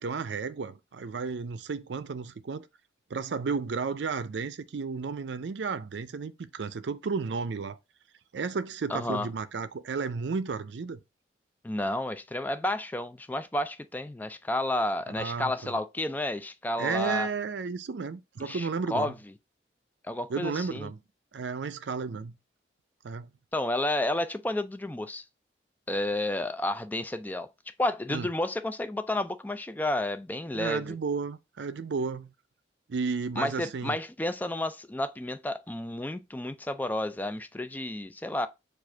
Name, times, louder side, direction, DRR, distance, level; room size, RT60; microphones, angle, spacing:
voice 1, 0.0-2.7 3.1-7.8 8.3-11.0 15.1-15.7 16.8-19.1 20.3-21.0 21.3-22.4 23.0-23.3 28.1-28.3 30.5-32.3 32.9-34.0, right 5 dB, 75° right, 0.5 m, -33 dB
voice 2, 8.9-9.3 11.6-17.3 18.4-19.1 20.0-20.9 23.5-25.2 25.9-27.5 27.8-31.0 33.4-38.5, left 1 dB, 10° left, 0.3 m, -31 dB
4.8 x 2.5 x 4.4 m
head